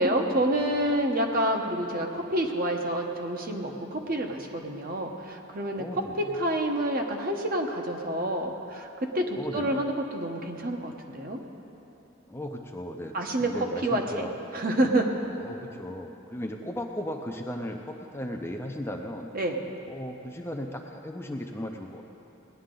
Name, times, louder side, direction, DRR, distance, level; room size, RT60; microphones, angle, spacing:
voice 1, 0.0-6.0 6.3-8.9 9.1-11.4 13.1-14.3 14.5-15.1 19.3-19.6, right 1 dB, 45° right, 2 dB, 1.0 m, -28 dB
voice 2, 5.8-6.4 9.4-9.9 12.3-14.3 15.4-19.3 19.9-22.0, left 1 dB, 10° left, 2 dB, 0.5 m, -36 dB
18.5 x 10.5 x 3.8 m, 3.0 s
head